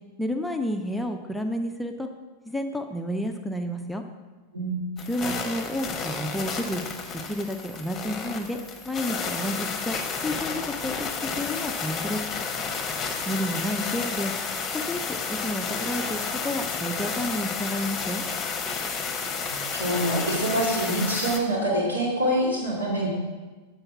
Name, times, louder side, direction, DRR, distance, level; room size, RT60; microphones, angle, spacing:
voice 1, 0.2-2.1 2.5-4.0 5.1-6.8 7.3-8.6 8.9-10.0 10.2-11.1 11.3-12.2 13.3-14.3 14.7-18.2, left 1 dB, 5° left, 4 dB, 0.5 m, -30 dB
voice 2, 4.5-4.9 19.5-23.1, right 1 dB, 80° right, -5 dB, 2.7 m, -26 dB
sound 1, 5.0-21.4, left 5 dB, 25° left, 0.9 m, -31 dB
7.7 x 4.6 x 5.8 m, 1.3 s
figure-of-eight pair, 90°, 0 cm